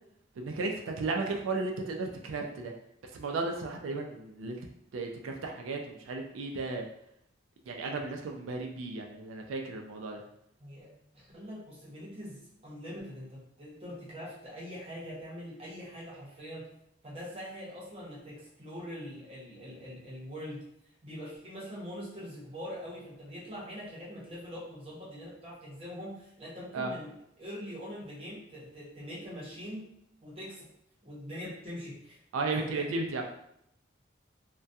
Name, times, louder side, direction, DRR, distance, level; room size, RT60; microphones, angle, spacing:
voice 1, 0.4-2.7 3.1-4.6 4.9-6.9 7.7-10.2 26.7-26.9 32.3-33.2, right 3 dB, 85° right, 2 dB, 0.4 m, -34 dB
voice 2, 10.6-16.7 17.0-20.6 21.0-29.9 30.2-30.7 31.0-32.2 32.6-32.9, equal, 30° right, -6 dB, 0.7 m, -43 dB
2.3 x 2.2 x 2.6 m, 0.75 s
head